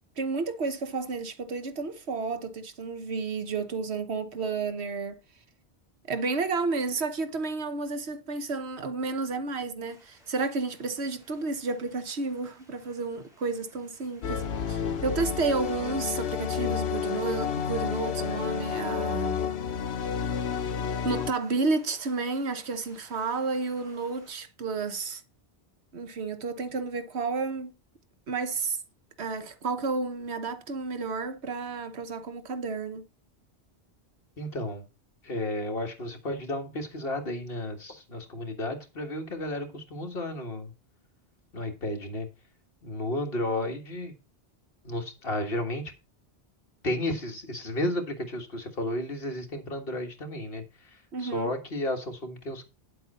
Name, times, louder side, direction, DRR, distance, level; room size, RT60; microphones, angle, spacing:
voice 1, 0.2-5.2 6.1-19.4 21.0-25.2 25.9-27.7 28.3-28.8 29.2-33.0 51.1-51.5, right 4 dB, 85° right, 1.3 m, -31 dB
sound 1, 9.8-24.3, right 1 dB, 5° right, 3.8 m, -59 dB
sound 2, 14.2-21.3, left 7 dB, 85° left, 1.1 m, -30 dB
voice 2, 34.4-34.9 35.2-40.7 41.5-42.3 42.8-44.1 44.8-45.8 46.8-52.6, left 1 dB, 65° left, 1.9 m, -33 dB
9.7 x 7.7 x 4.2 m
omnidirectional pair, 1.1 m